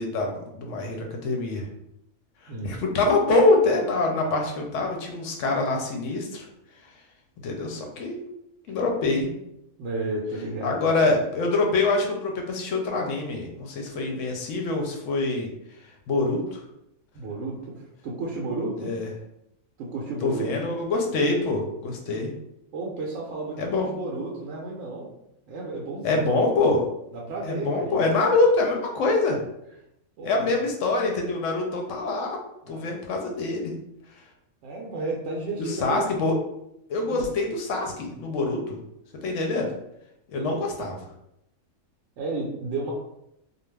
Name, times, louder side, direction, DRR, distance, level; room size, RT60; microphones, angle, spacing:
voice 1, 0.0-1.6 2.6-6.5 7.4-8.2 8.7-9.3 10.6-15.5 16.1-16.6 18.8-19.1 20.2-22.3 23.6-23.9 26.0-26.8 27.4-29.4 30.2-32.4 32.7-33.7 35.6-36.4 36.9-38.8 39.2-39.7 40.3-41.1, left 3 dB, 70° left, 2 dB, 0.9 m, -25 dB
voice 2, 2.5-2.8 8.7-8.8 9.8-10.8 17.1-18.9 19.8-20.5 22.7-25.1 25.5-26.2 27.1-28.0 30.2-30.6 32.6-32.9 34.6-36.0 37.1-37.3 40.3-40.5 42.2-42.9, right 3 dB, 65° right, -3 dB, 0.8 m, -32 dB
2.4 x 2.3 x 3.2 m, 0.80 s
omnidirectional pair, 1.5 m